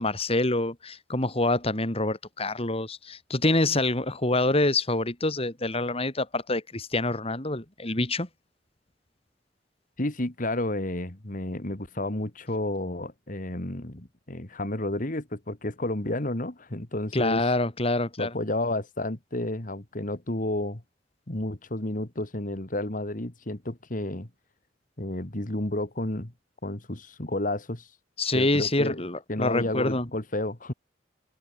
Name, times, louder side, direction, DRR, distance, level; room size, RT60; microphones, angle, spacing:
voice 1, 0.0-8.3 17.1-18.3 28.2-30.1, left 2 dB, 35° left, 3.4 m, -26 dB
voice 2, 10.0-17.4 18.2-20.8 21.3-24.3 25.0-26.3 26.6-27.9 28.3-29.0 29.3-30.7, left 1 dB, 50° left, 2.4 m, -31 dB
head